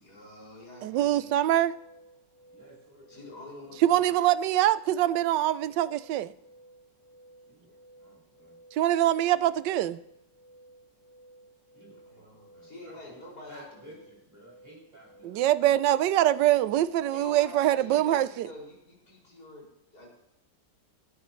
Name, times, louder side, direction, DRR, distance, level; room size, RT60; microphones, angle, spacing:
voice 1, 0.0-1.6 3.1-4.2 12.0-14.0 17.1-20.1, left 2 dB, 60° left, 6.3 m, -47 dB
sound 1, 0.6-17.4, right 1 dB, 60° right, 5.5 m, -56 dB
voice 2, 0.8-1.7 3.8-6.3 8.7-10.0 15.2-18.5, right 13 dB, 80° right, 1.2 m, -24 dB
voice 3, 2.5-3.7 7.5-8.6 11.7-12.2 12.5-13.2 13.5-15.8, right 1 dB, 10° right, 6.3 m, -54 dB
17.5 x 13.0 x 3.1 m
omnidirectional pair, 1.9 m